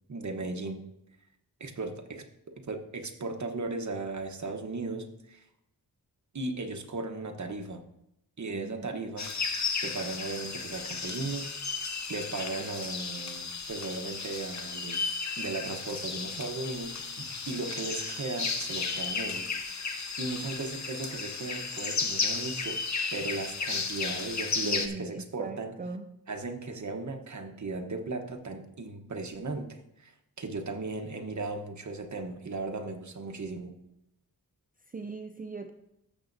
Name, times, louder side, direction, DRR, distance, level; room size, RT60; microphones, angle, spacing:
voice 1, 0.1-0.8 1.6-2.2 2.6-5.4 6.3-7.8 8.4-9.3 9.8-11.5 12.1-19.5 20.2-22.8 23.1-25.8 26.3-30.1 30.4-33.7, right 3 dB, 50° right, 4 dB, 1.1 m, -36 dB
voice 2, 8.5-9.1 24.6-26.1 34.8-35.7, right 4 dB, 25° right, 6 dB, 0.4 m, -40 dB
sound 1, 9.2-24.9, left 4 dB, 50° left, 0.9 m, -34 dB
13.5 x 6.8 x 2.7 m, 0.83 s
wide cardioid pair, 85°, 37 cm